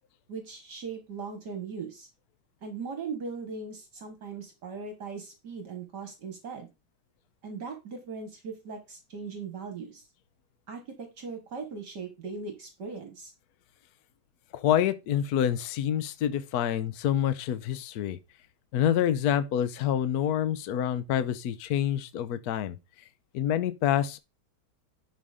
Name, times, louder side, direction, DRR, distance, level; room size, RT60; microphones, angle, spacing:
voice 1, 0.3-2.1 2.6-6.7 7.4-10.1 10.7-13.3, right 5 dB, 60° right, 2.0 m, -39 dB
voice 2, 14.5-18.2 18.7-22.8 23.3-24.2, left 10 dB, 60° left, 1.1 m, -27 dB
11.0 x 4.2 x 5.0 m
omnidirectional pair, 2.2 m